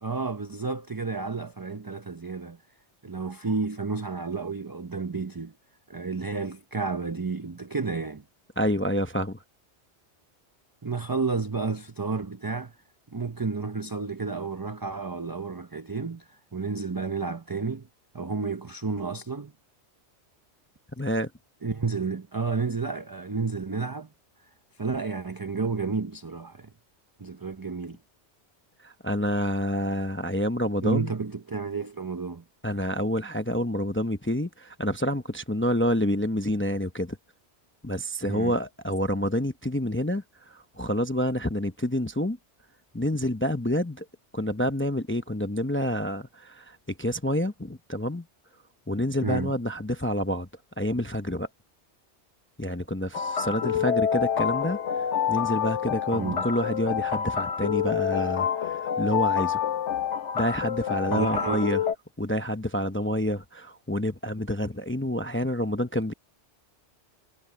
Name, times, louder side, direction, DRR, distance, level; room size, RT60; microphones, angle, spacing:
voice 1, 0.0-2.6 3.0-5.5 5.9-8.2 10.8-12.7 13.1-17.9 18.1-19.5 21.6-24.1 24.8-26.7 27.2-28.0 30.8-32.4 38.3-38.6 49.2-49.5 56.1-56.5 61.1-61.7, right 4 dB, 20° right, 0.6 m, -31 dB
voice 2, 8.6-9.4 21.0-21.3 28.8-31.1 32.6-37.2 37.8-40.2 40.5-42.4 42.9-44.0 44.3-48.2 48.9-50.5 50.8-51.5 52.6-54.8 55.3-59.6 60.3-61.8 62.2-66.1, equal, 10° left, 0.7 m, -28 dB
sound 1, 53.1-61.9, left 8 dB, 80° left, 1.3 m, -27 dB
omnidirectional pair, 1.2 m